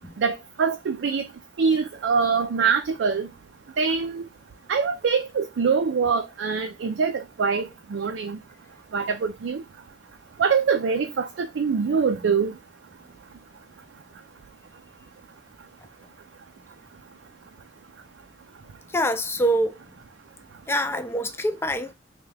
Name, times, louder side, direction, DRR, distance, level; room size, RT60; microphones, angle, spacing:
voice 1, 0.2-1.3 1.6-3.3 3.8-4.3 4.7-8.4 8.9-9.6 10.4-12.5, right 5 dB, 85° right, 0.4 m, -24 dB
voice 2, 18.9-19.7 20.7-21.9, equal, 15° left, 0.4 m, -25 dB
3.3 x 2.2 x 3.2 m
head